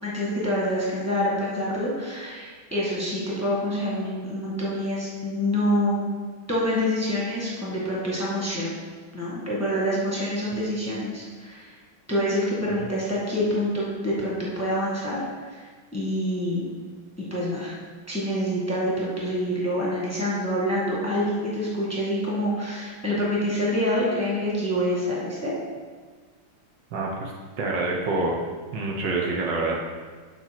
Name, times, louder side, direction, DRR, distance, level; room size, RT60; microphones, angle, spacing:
voice 1, 0.0-6.0 6.5-8.7 9.1-11.7 12.1-15.6 15.9-16.7 17.2-17.7 18.1-25.5, equal, 10° left, -6 dB, 1.3 m, -26 dB
voice 2, 26.9-27.3 27.6-28.4 28.7-29.8, right 3 dB, 65° right, -2 dB, 1.5 m, -26 dB
7.4 x 4.7 x 5.9 m, 1.5 s
omnidirectional pair, 2.2 m